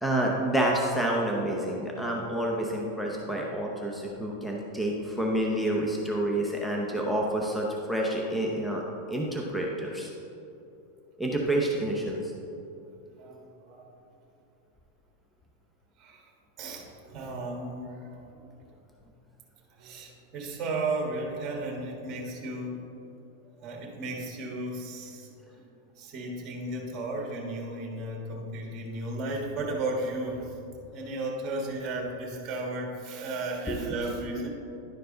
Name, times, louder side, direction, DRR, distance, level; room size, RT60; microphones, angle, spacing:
voice 1, 0.0-8.8 9.1-10.1 11.2-12.2 33.7-33.8, right 1 dB, 5° left, -2 dB, 0.8 m, -28 dB
voice 2, 13.1-13.9 16.0-16.3 16.6-18.4 19.7-22.8 23.6-25.3 26.0-30.6 30.9-34.5, right 2 dB, 30° right, 0 dB, 1.5 m, -34 dB
11.0 x 4.6 x 3.9 m, 2.8 s
supercardioid pair, 135°, 0 cm